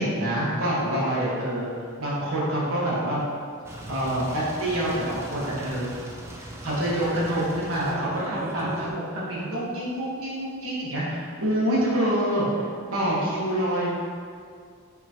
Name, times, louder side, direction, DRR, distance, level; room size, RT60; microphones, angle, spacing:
voice 1, 0.0-1.7 2.0-3.2 3.9-5.9 6.4-12.6 12.9-13.9, right 1 dB, 65° right, -7 dB, 1.3 m, -26 dB
sound 1, 3.6-8.9, right 1 dB, 10° right, 0.3 m, -39 dB
5.8 x 3.0 x 2.8 m, 2.2 s
head